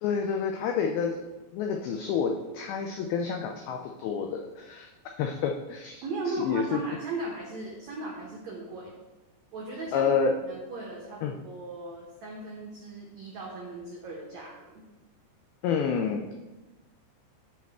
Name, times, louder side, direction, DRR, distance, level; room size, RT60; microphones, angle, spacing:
voice 1, 0.0-1.2 1.5-4.9 5.2-6.0 6.4-6.8 9.9-10.3 11.2-11.3 15.6-16.2, left 6 dB, 90° left, 3 dB, 2.1 m, -28 dB
voice 2, 6.0-8.9 9.5-10.1 10.4-14.8, right 2 dB, 90° right, -3 dB, 1.5 m, -37 dB
12.0 x 4.7 x 3.5 m, 1.1 s
omnidirectional pair, 5.0 m